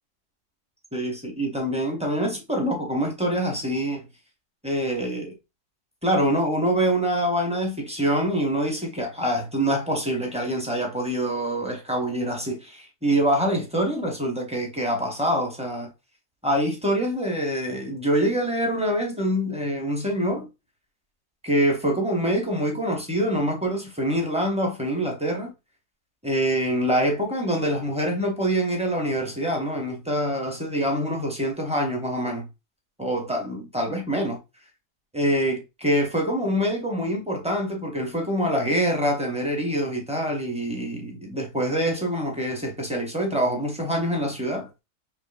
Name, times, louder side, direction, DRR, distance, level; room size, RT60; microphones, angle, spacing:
voice 1, 0.9-4.0 4.6-5.3 6.0-15.9 16.4-20.5 21.4-25.5 26.2-32.5 33.0-34.4 35.1-44.7, equal, 10° right, 0.3 m, -25 dB
4.3 x 2.9 x 2.5 m
omnidirectional pair, 1.7 m